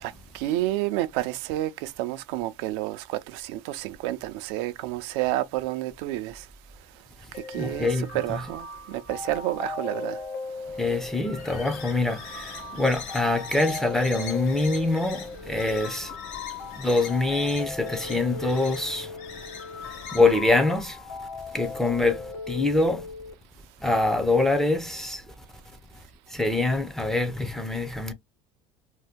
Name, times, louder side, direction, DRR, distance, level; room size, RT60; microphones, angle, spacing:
voice 1, 0.0-6.4 7.5-10.2, right 15 dB, 80° right, 0.5 m, -30 dB
sound 1, 7.3-23.3, left 4 dB, 80° left, 1.2 m, -38 dB
voice 2, 7.6-8.4 10.8-16.2 16.7-19.2 20.1-21.3 21.5-23.1 23.8-25.3 26.3-28.1, left 2 dB, 5° left, 0.5 m, -25 dB
sound 2, 10.4-20.5, left 6 dB, 60° left, 0.9 m, -42 dB
2.7 x 2.2 x 3.4 m
supercardioid pair, 125°, 14 cm